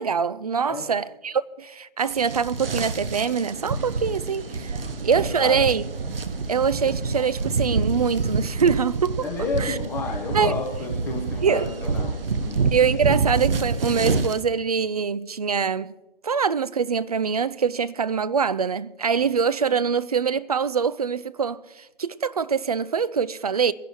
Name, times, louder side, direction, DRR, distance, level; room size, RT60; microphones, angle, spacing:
voice 1, 0.0-5.9 6.5-9.2 9.6-9.8 10.3-10.5 11.4-11.7 12.7-15.9 16.2-23.7, right 6 dB, 40° right, 0.4 m, -24 dB
sound 1, 2.0-14.4, right 4 dB, 70° right, 1.0 m, -27 dB
voice 2, 4.7-5.6 9.2-12.6, left 3 dB, 5° left, 0.9 m, -31 dB
21.5 x 11.0 x 3.0 m
figure-of-eight pair, 150°, 30 cm